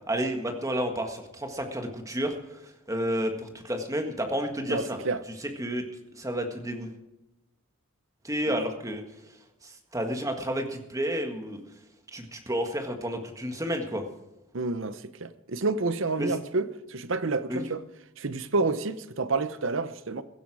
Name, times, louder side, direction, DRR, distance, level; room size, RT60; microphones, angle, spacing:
voice 1, 0.1-2.3 2.9-5.0 5.4-5.8 6.1-6.9 8.2-9.0 9.6-11.6 12.1-14.0 16.2-16.3 17.5-17.6, equal, 15° right, 1.7 m, -30 dB
voice 2, 4.7-5.2 8.5-8.6 14.5-17.8 18.2-20.2, right 3 dB, 60° right, 0.8 m, -29 dB
16.0 x 12.5 x 4.9 m
head